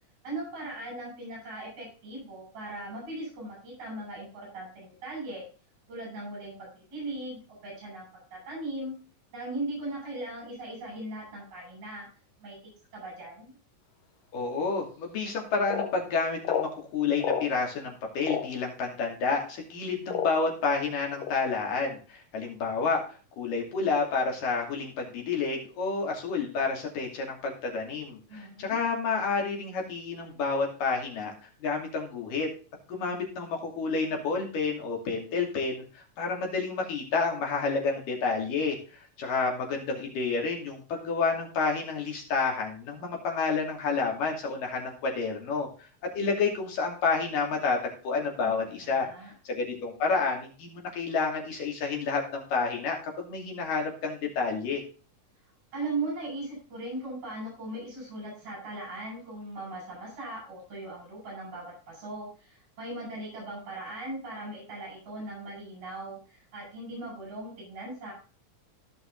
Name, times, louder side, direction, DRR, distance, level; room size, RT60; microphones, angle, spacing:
voice 1, 0.2-5.4 5.9-8.1 8.3-8.9 9.3-12.1 12.4-12.6 12.9-13.5 28.3-28.8 48.4-49.3 55.7-68.1, right 2 dB, 55° right, -2 dB, 7.9 m, -38 dB
voice 2, 14.3-23.0 23.4-31.3 31.6-32.5 32.9-38.8 39.2-45.7 46.1-49.1 49.5-54.8, left 4 dB, 75° left, 1 dB, 4.3 m, -29 dB
sound 1, 14.9-15.0 15.7-15.9 16.4-16.7 17.2-17.5 18.2-18.5 19.3-19.4 20.1-20.5 21.2-21.3, left 8 dB, 60° left, 2.4 m, -29 dB
16.0 x 5.6 x 3.9 m, 0.37 s
omnidirectional pair, 3.8 m